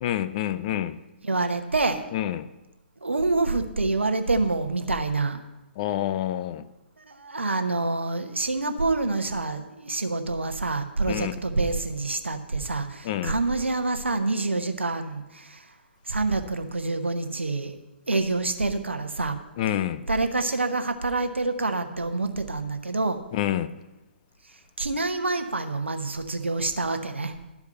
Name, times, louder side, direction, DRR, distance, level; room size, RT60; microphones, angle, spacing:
voice 1, 0.0-1.0 2.1-2.5 5.8-6.7 11.1-11.3 13.0-13.4 19.6-20.0 23.3-23.7, left 12 dB, 35° left, 0.4 m, -27 dB
voice 2, 1.2-2.0 3.0-5.4 7.0-15.7 16.1-17.7 18.1-19.4 20.1-23.2 24.8-27.3, right 3 dB, 80° right, 1.0 m, -27 dB
12.0 x 4.8 x 6.6 m
figure-of-eight pair, 125°, 6 cm